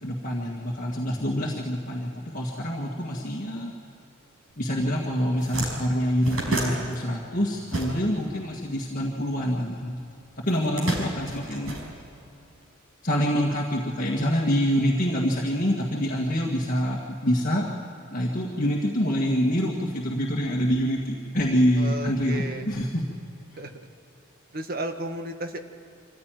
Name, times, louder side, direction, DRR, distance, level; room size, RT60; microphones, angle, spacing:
voice 1, 0.0-3.7 4.6-10.0 10.4-11.8 13.0-17.6 18.1-23.1, equal, 40° left, -2 dB, 1.8 m, -26 dB
sound 1, 5.3-8.4 8.6-9.8 10.4-12.5, right 1 dB, 75° right, 5.4 m, -31 dB
voice 2, 21.7-22.7 23.6-23.9 24.5-25.6, right 1 dB, 45° right, 5 dB, 1.5 m, -33 dB
25.0 x 15.0 x 9.2 m, 2.8 s
head